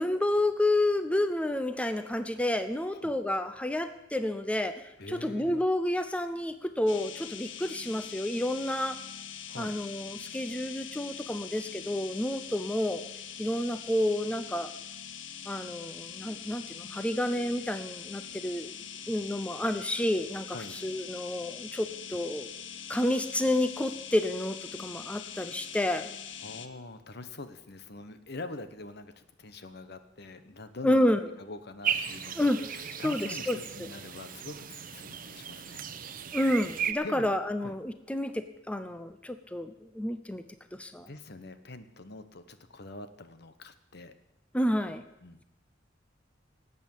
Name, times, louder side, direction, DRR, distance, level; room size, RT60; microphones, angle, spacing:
voice 1, 0.0-9.0 9.6-13.0 13.4-14.7 15.5-18.7 19.1-20.6 20.8-22.5 22.9-26.1 30.8-31.2 32.4-32.6 33.0-33.9 36.3-40.4 40.8-41.1 44.5-45.0, left 1 dB, 5° left, 9 dB, 0.6 m, -30 dB
voice 2, 5.0-5.7 9.5-9.8 20.5-20.8 26.4-35.9 37.0-37.4 37.6-37.8 41.0-44.1 44.8-44.9 45.2-45.4, left 2 dB, 60° left, 11 dB, 1.1 m, -44 dB
sound 1, 6.9-26.7, left 8 dB, 85° left, 1.0 m, -43 dB
sound 2, 31.8-36.9, right 8 dB, 50° right, 0.9 m, -36 dB
18.5 x 8.4 x 7.3 m, 0.91 s
head